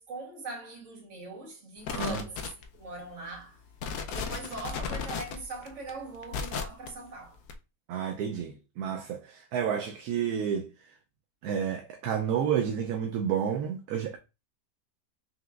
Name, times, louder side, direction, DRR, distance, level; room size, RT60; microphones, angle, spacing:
voice 1, 0.0-3.6 4.1-7.4, right 3 dB, 50° right, 1.4 m, -41 dB
sound 1, 1.8-2.9 3.3-3.4 3.7-6.9 7.5-7.6, left 6 dB, 75° left, 1.2 m, -34 dB
voice 2, 1.9-2.2 7.9-10.9 11.4-14.2, right 8 dB, 70° right, 1.0 m, -30 dB
5.8 x 2.9 x 2.3 m
omnidirectional pair, 1.8 m